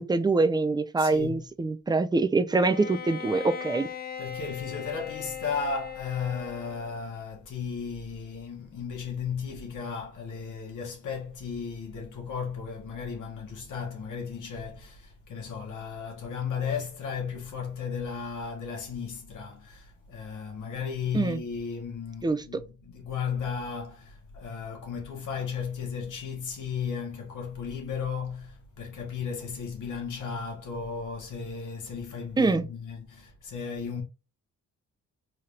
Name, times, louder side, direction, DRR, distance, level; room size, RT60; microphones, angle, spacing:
voice 1, 0.0-3.9 21.1-21.4 22.2-22.4 32.4-32.7, right 3 dB, 15° right, 0.4 m, -24 dB
voice 2, 1.0-1.5 4.2-34.0, left 6 dB, 80° left, 1.6 m, -35 dB
Bowed string instrument, 2.6-7.0, left 8 dB, 30° left, 0.7 m, -39 dB
4.1 x 2.6 x 3.2 m
cardioid pair, 100°, 30 cm